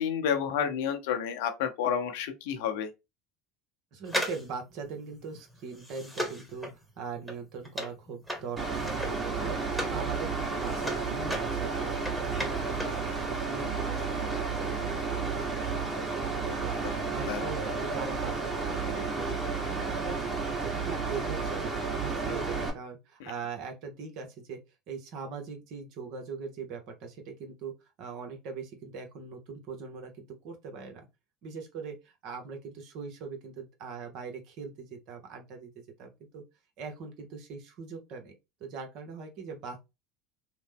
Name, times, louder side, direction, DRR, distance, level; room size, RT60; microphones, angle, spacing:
voice 1, 0.0-2.9 16.8-17.0 17.3-17.5 23.2-23.3, left 8 dB, 70° left, 0.6 m, -30 dB
voice 2, 3.9-6.7 7.0-11.9 12.2-20.2 20.5-24.6 24.9-27.7 28.0-31.1 31.4-36.4 36.8-38.3 38.6-39.8, right 5 dB, 60° right, 0.9 m, -41 dB
sound 1, 4.1-10.0 10.4-13.0 13.3-13.4, equal, ahead, 1.1 m, -37 dB
Mechanical fan, 8.6-22.7, right 4 dB, 25° right, 1.3 m, -32 dB
2.9 x 2.0 x 3.4 m
hypercardioid pair, 80°, 0 cm